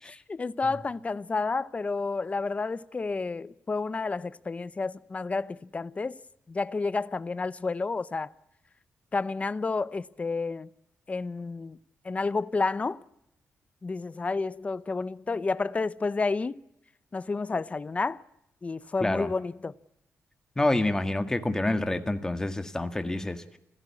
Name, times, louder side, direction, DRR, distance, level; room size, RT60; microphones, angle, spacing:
voice 1, 0.0-6.2 6.5-8.3 9.1-10.7 11.1-11.8 12.0-13.0 13.8-16.6 17.1-18.2 18.6-19.7, left 3 dB, 25° left, 0.8 m, -30 dB
voice 2, 20.6-23.6, left 2 dB, 10° left, 1.7 m, -28 dB
27.5 x 16.5 x 8.5 m
cardioid pair, 120°, 5 cm